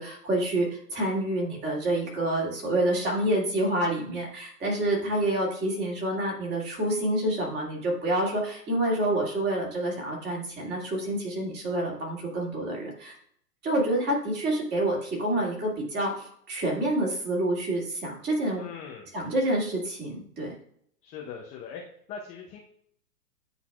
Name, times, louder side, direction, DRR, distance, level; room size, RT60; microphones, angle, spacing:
voice 1, 0.0-13.2 13.6-18.6 19.1-20.5, right 1 dB, 20° right, -2 dB, 2.3 m, -28 dB
voice 2, 18.6-19.1 21.0-21.8 22.1-22.6, left 6 dB, 15° left, 0 dB, 0.5 m, -40 dB
9.9 x 4.1 x 2.3 m, 0.64 s
hypercardioid pair, 125°, 47 cm